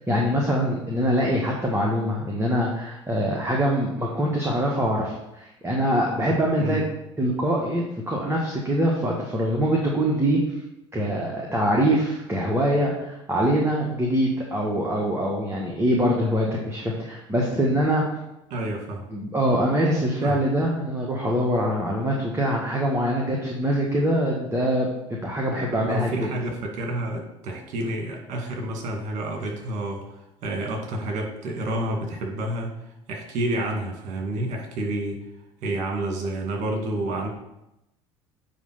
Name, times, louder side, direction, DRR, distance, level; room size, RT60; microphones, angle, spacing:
voice 1, 0.1-6.9 7.2-10.4 10.9-18.0 19.1-24.9 25.2-26.3, equal, 15° right, -2 dB, 1.5 m, -24 dB
voice 2, 18.5-19.0 20.2-20.4 25.8-35.2 35.6-37.3, right 1 dB, 55° right, 1 dB, 2.1 m, -29 dB
9.2 x 3.2 x 5.6 m, 0.88 s
hypercardioid pair, 65°, 15 cm